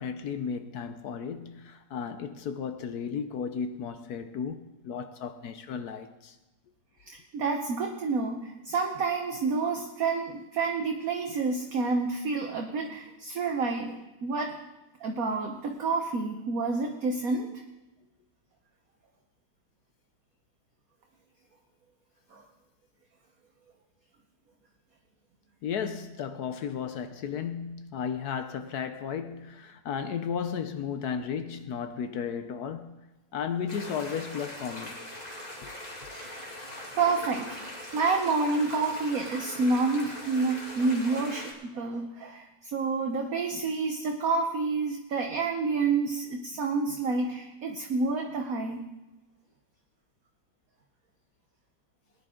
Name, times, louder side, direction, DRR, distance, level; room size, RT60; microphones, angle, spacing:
voice 1, 0.0-6.3 25.6-33.0 33.3-35.0 35.6-35.7, left 7 dB, 65° left, 1.1 m, -34 dB
voice 2, 7.1-14.6 15.0-17.6 22.3-22.4 36.1-36.3 37.0-48.9, right 4 dB, 55° right, 1.2 m, -29 dB
sound 1, 33.7-41.5, left 1 dB, 20° left, 2.2 m, -41 dB
19.0 x 10.0 x 3.7 m
omnidirectional pair, 2.0 m